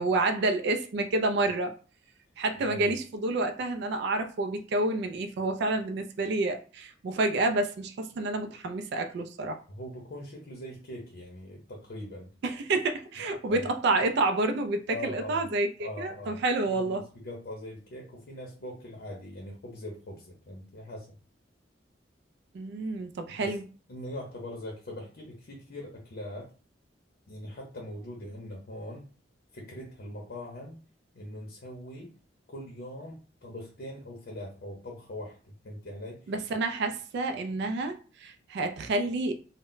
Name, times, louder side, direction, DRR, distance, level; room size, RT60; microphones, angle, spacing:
voice 1, 0.0-1.7 2.4-9.6 12.4-17.0 22.5-23.6 36.3-39.3, right 2 dB, 60° right, 6 dB, 0.3 m, -29 dB
voice 2, 2.6-2.9 9.7-12.3 13.5-13.6 14.9-15.5 15.8-16.4 16.7-21.1 23.4-23.6 23.9-26.5 27.3-29.1 29.5-30.8 31.1-32.1 32.5-36.3, left 1 dB, 55° left, 0 dB, 0.6 m, -41 dB
2.1 x 2.1 x 3.7 m, 0.37 s
head